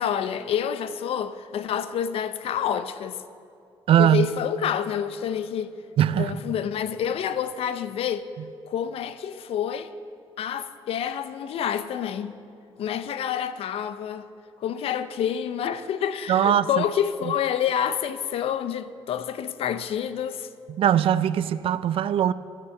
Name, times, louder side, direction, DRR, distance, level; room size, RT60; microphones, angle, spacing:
voice 1, 0.0-3.2 4.0-5.7 6.2-8.3 8.7-9.9 10.4-12.4 12.8-14.2 14.6-20.5, left 9 dB, 70° left, 0.6 m, -28 dB
voice 2, 3.9-4.3 6.0-6.4 16.3-16.8 20.8-22.3, right 10 dB, 65° right, 0.4 m, -20 dB
13.0 x 7.6 x 7.0 m
cardioid pair, 80°, 10 cm